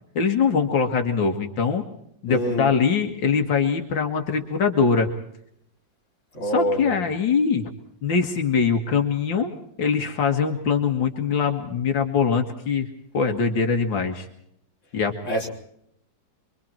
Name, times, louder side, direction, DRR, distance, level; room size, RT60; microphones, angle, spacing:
voice 1, 0.2-1.8 2.2-5.1 6.4-7.7 8.0-9.5 9.8-12.9 13.1-14.3 14.9-15.1, left 5 dB, 90° left, 4 dB, 2.5 m, -22 dB
voice 2, 2.3-2.7 6.3-6.9 15.3-15.5, equal, 40° left, -2 dB, 4.2 m, -25 dB
26.0 x 23.5 x 4.5 m, 0.72 s
omnidirectional pair, 2.0 m